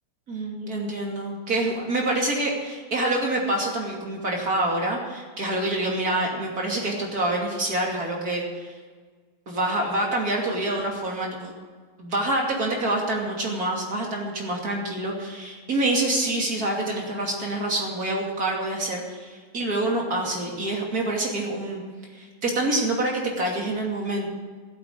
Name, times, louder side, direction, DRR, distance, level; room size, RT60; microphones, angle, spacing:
voice 1, 0.3-8.8 9.5-11.5 12.0-21.8 22.1-24.3, right 2 dB, 45° right, -1 dB, 3.1 m, -26 dB
15.0 x 8.4 x 8.1 m, 1.5 s
omnidirectional pair, 2.2 m